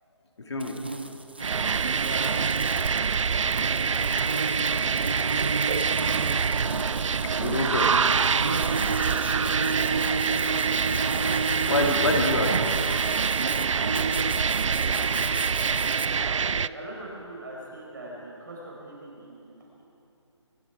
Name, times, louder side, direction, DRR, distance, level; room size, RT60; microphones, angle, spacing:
voice 1, 0.4-0.8 2.7-2.9 6.3-6.8 7.2-7.9 9.4-9.5 11.6-12.7, left 2 dB, 60° left, 2 dB, 2.3 m, -28 dB
sound 1, 0.6-16.1, right 3 dB, 20° right, 0.4 m, -33 dB
sound 2, 1.4-16.7, right 6 dB, 85° right, 0.4 m, -25 dB
voice 2, 2.0-2.3 13.9-14.7 16.2-19.9, right 1 dB, 40° right, -3 dB, 4.9 m, -42 dB
24.0 x 12.0 x 4.7 m, 2.7 s
hypercardioid pair, 175°, 16 cm